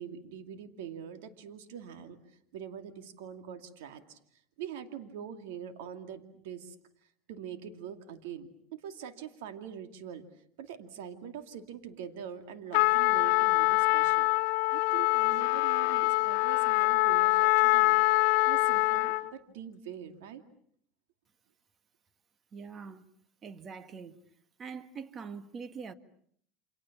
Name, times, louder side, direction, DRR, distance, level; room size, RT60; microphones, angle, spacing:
voice 1, 0.0-4.2 4.6-6.8 7.3-10.2 10.6-14.3 14.7-20.4, right 8 dB, 85° right, 2.5 m, -44 dB
Trumpet, 12.7-19.3, left 22 dB, 75° left, 1.2 m, -25 dB
voice 2, 22.5-23.1 23.4-24.2 24.6-25.9, right 5 dB, 30° right, 1.7 m, -43 dB
29.5 x 26.5 x 7.3 m
supercardioid pair, 120°, 0 cm